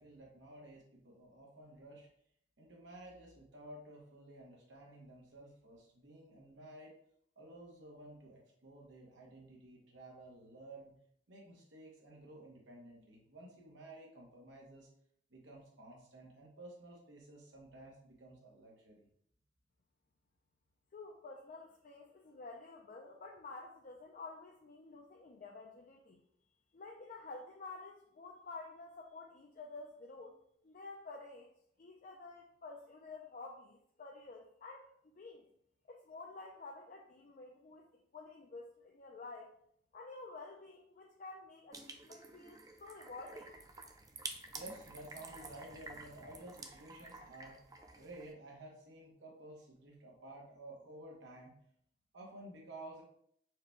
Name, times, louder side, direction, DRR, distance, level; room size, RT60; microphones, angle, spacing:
voice 1, 0.0-2.1 2.6-7.0 7.4-10.9 11.3-14.9 15.3-19.1 44.5-47.6 48.0-51.6 52.1-53.0, right 1 dB, 85° right, -2 dB, 1.0 m, -53 dB
voice 2, 20.9-26.2 26.7-30.4 30.6-31.5 31.8-35.4 35.9-37.9 38.1-39.5 39.9-43.5, left 3 dB, 45° left, 0 dB, 0.4 m, -50 dB
sound 1, 41.7-48.3, right 3 dB, 20° right, 0.4 m, -50 dB
4.7 x 2.2 x 4.4 m, 0.69 s
head